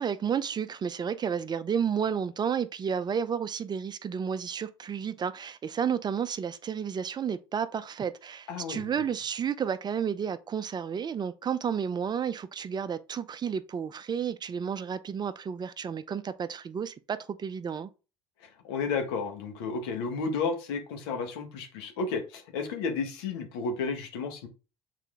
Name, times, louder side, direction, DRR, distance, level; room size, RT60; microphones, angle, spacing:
voice 1, 0.0-17.9, right 7 dB, 35° right, 0.6 m, -31 dB
voice 2, 8.5-8.9 18.4-24.5, left 4 dB, 80° left, 1.4 m, -32 dB
6.7 x 4.2 x 3.6 m
hypercardioid pair, 75°, 13 cm